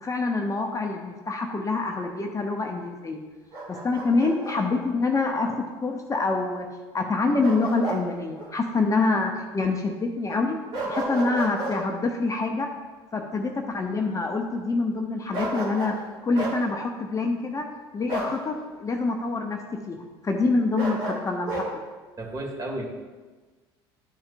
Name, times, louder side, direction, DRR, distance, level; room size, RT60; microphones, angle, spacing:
voice 1, 0.0-3.2 3.7-6.7 6.9-10.6 10.9-12.7 13.1-15.9 16.2-17.7 17.9-19.6 19.9-21.6, left 3 dB, 25° left, 3 dB, 0.7 m, -26 dB
Bark, 3.5-4.6 7.4-8.0 8.4-8.5 10.7-11.8 15.3-16.0 16.3-16.6 18.1-18.4 20.7-21.7, right 2 dB, 70° right, 2.0 m, -31 dB
voice 2, 22.2-22.9, right 1 dB, 25° right, -1 dB, 1.8 m, -32 dB
11.0 x 4.3 x 2.5 m, 1.3 s
hypercardioid pair, 65°, 13 cm